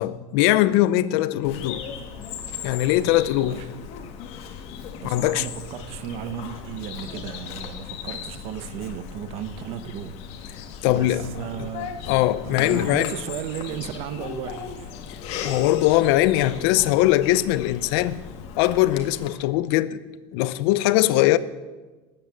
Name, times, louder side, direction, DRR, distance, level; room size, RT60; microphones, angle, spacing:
voice 1, 0.0-1.8 2.6-3.6 5.0-5.5 10.8-11.3 11.6-11.7 12.1-13.1 15.1-18.2 18.6-20.0 20.3-21.4, left 15 dB, 75° left, 0.8 m, -21 dB
Bird vocalization bird call bird song, 1.4-19.3, left 7 dB, 50° left, 1.8 m, -37 dB
voice 2, 5.0-10.2 10.8-12.0 12.4-14.9, right 10 dB, 50° right, 0.9 m, -35 dB
20.0 x 8.9 x 7.6 m
cardioid pair, 170°, 13 cm